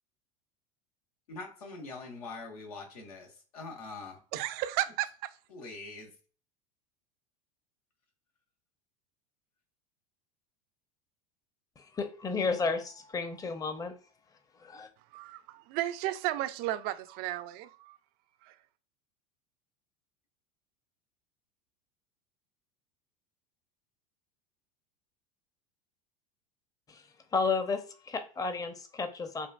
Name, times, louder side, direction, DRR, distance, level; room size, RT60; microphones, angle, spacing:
voice 1, 1.3-4.2 5.5-6.1, left 3 dB, 85° left, 1.1 m, -43 dB
voice 2, 4.3-5.1 15.1-18.0 18.4-18.5, right 14 dB, 55° right, 0.4 m, -33 dB
voice 3, 11.8-13.9 14.6-14.9 26.9-27.0 27.3-29.5, left 4 dB, 20° left, 0.6 m, -32 dB
5.2 x 2.4 x 2.3 m
hypercardioid pair, 90°, 19 cm